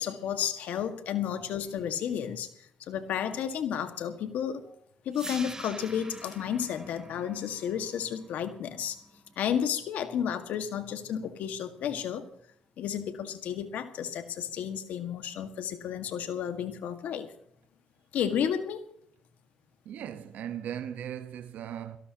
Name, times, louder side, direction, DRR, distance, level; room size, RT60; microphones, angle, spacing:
voice 1, 0.0-4.7 5.1-9.0 9.4-12.3 12.8-17.3 18.1-18.8, left 8 dB, 80° left, 1.7 m, -32 dB
sound 1, 5.1-11.2, right 2 dB, 25° right, 1.3 m, -47 dB
voice 2, 19.8-22.0, right 10 dB, 80° right, 1.2 m, -38 dB
26.0 x 18.0 x 2.9 m
supercardioid pair, 55°, 3 cm